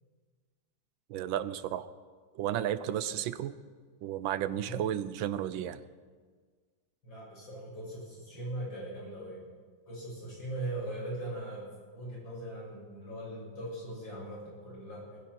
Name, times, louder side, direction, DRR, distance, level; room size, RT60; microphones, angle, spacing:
voice 1, 1.1-1.9 2.3-3.6 4.0-5.8, right 11 dB, 85° right, 15 dB, 1.5 m, -33 dB
voice 2, 7.0-9.4 9.9-11.7 11.9-15.2, right 1 dB, 75° left, -5 dB, 7.6 m, -40 dB
20.0 x 16.0 x 4.6 m, 1.5 s
omnidirectional pair, 2.1 m